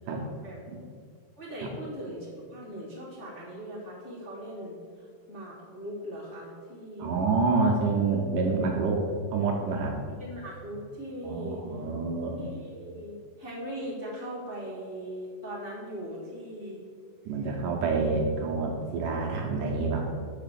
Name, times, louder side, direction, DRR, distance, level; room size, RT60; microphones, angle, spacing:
voice 1, 0.0-0.6 1.4-4.8 5.3-7.2 10.2-11.6 12.4-16.8, equal, 30° left, -10 dB, 1.6 m, -39 dB
voice 2, 7.0-9.0 9.3-9.9 11.2-12.4 17.3-20.0, right 4 dB, 75° right, 0 dB, 2.2 m, -27 dB
6.6 x 5.8 x 6.8 m, 2.1 s
omnidirectional pair, 4.2 m